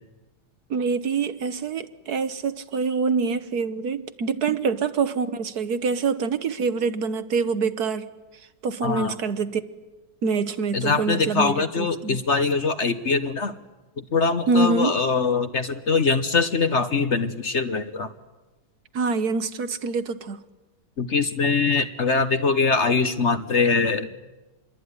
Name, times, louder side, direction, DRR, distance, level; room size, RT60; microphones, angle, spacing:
voice 1, 0.7-8.1 8.6-9.6 10.2-12.2 14.5-15.0 18.9-20.4, right 4 dB, 65° right, 12 dB, 1.6 m, -25 dB
voice 2, 8.8-9.1 10.7-13.6 14.0-18.1 21.0-24.1, left 4 dB, 45° left, 10 dB, 1.2 m, -23 dB
27.0 x 22.5 x 9.7 m, 1.1 s
omnidirectional pair, 1.9 m